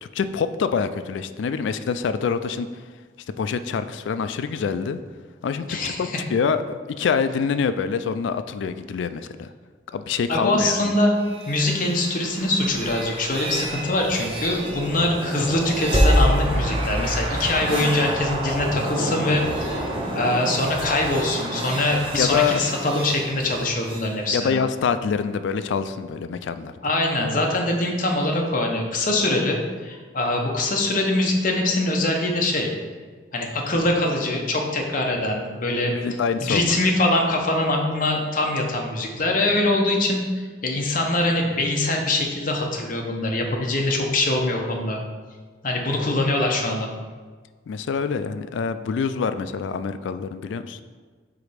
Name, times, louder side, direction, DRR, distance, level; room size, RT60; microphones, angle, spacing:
voice 1, 0.0-2.7 3.4-5.0 5.4-6.6 6.9-9.5 9.9-10.9 22.2-22.6 24.3-26.7 35.9-36.7 46.0-46.1 47.7-50.8, left 6 dB, 70° left, 12 dB, 0.3 m, -25 dB
voice 2, 5.7-6.2 10.3-11.2 11.5-19.8 20.1-24.5 26.8-32.7 33.3-35.9 36.4-45.0 45.6-46.9, left 2 dB, 45° left, 1 dB, 0.8 m, -23 dB
sound 1, 11.2-24.1, equal, 25° right, 0.8 m, -27 dB
4.9 x 4.1 x 4.9 m, 1.5 s
head